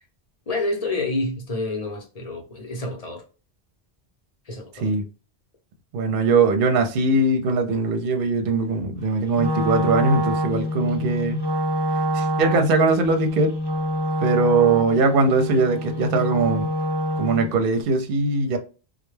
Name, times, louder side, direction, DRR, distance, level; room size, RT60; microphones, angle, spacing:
voice 1, 0.5-3.2 4.5-4.9, left 2 dB, 40° left, 0.7 m, -28 dB
voice 2, 5.9-11.4 12.1-13.5 14.2-16.7 17.2-18.6, right 3 dB, 65° right, 0.7 m, -21 dB
Wind instrument woodwind instrument, 9.3-17.6, equal, 45° right, 0.3 m, -26 dB
2.2 x 2.1 x 3.0 m
omnidirectional pair, 1.0 m